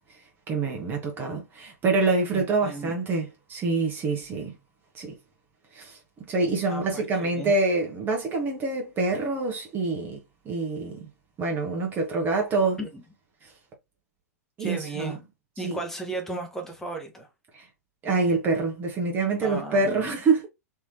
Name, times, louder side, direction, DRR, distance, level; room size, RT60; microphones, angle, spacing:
voice 1, 0.5-4.5 4.9-5.1 5.7-6.0 6.3-10.2 10.4-11.0 11.4-12.8 14.6-15.1 15.6-15.8 17.5-17.6 18.0-20.5, right 3 dB, 25° right, 1.1 m, -26 dB
voice 2, 2.3-2.9 6.7-7.5 12.8-13.0 14.6-15.2 15.6-17.3 19.4-20.1, right 2 dB, 5° left, 1.1 m, -35 dB
3.5 x 3.0 x 2.8 m
figure-of-eight pair, 100°, 9 cm